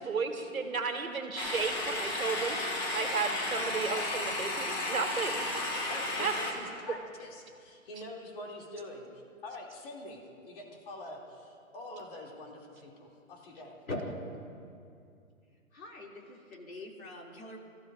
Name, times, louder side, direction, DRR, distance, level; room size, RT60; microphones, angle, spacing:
voice 1, 0.0-5.4 6.2-6.3, right 5 dB, 80° right, 5 dB, 1.9 m, -33 dB
sound 1, 1.4-6.5, left 2 dB, 15° left, 0.9 m, -33 dB
voice 2, 5.9-13.8, left 1 dB, 40° left, -1 dB, 2.7 m, -45 dB
voice 3, 15.7-17.6, left 1 dB, 80° left, 0 dB, 2.8 m, -41 dB
24.0 x 14.0 x 2.6 m, 2.4 s
hypercardioid pair, 150°, 41 cm